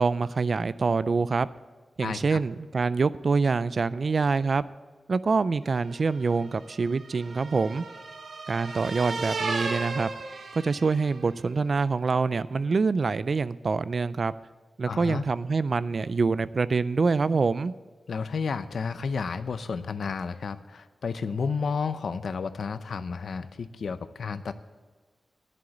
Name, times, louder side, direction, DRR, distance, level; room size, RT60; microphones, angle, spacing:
voice 1, 0.0-1.5 2.0-4.6 5.1-7.8 8.5-10.1 10.5-14.3 14.8-17.7, right 4 dB, 50° right, 17 dB, 0.3 m, -25 dB
voice 2, 2.0-2.4 14.9-15.2 18.1-24.5, left 5 dB, 75° left, 13 dB, 0.6 m, -31 dB
sound 1, 5.9-11.3, right 3 dB, 70° right, 1.0 m, -35 dB
10.5 x 7.7 x 8.4 m, 1.3 s
wide cardioid pair, 145°, 0 cm